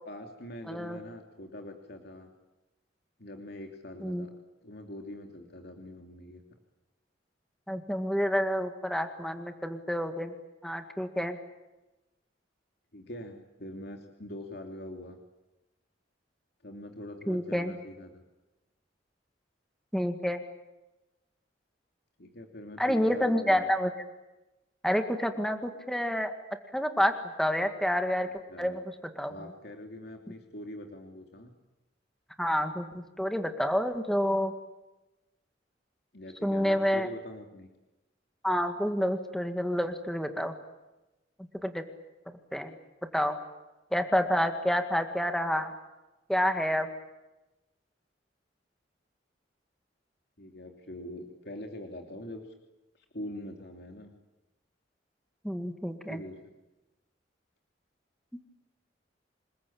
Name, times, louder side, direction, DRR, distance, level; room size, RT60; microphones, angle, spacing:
voice 1, 0.0-2.3 3.2-4.3 4.6-6.4 12.9-15.2 16.6-18.2 22.2-23.7 28.5-28.8 29.3-31.5 36.1-37.7 50.4-52.5 53.0-54.1 56.1-56.5, left 1 dB, 60° left, 3 dB, 2.9 m, -43 dB
voice 2, 0.7-1.0 4.0-4.3 7.7-10.3 10.6-11.4 17.3-17.7 19.9-20.4 22.8-23.9 24.8-26.3 26.7-27.1 27.4-28.3 28.6-28.8 29.2-29.3 32.4-34.5 36.4-37.1 38.4-40.5 41.6-41.8 42.5-42.7 43.1-43.4 43.9-45.7 46.3-46.9 55.4-56.2, equal, ahead, 6 dB, 1.9 m, -28 dB
27.5 x 21.0 x 8.7 m, 1.0 s
head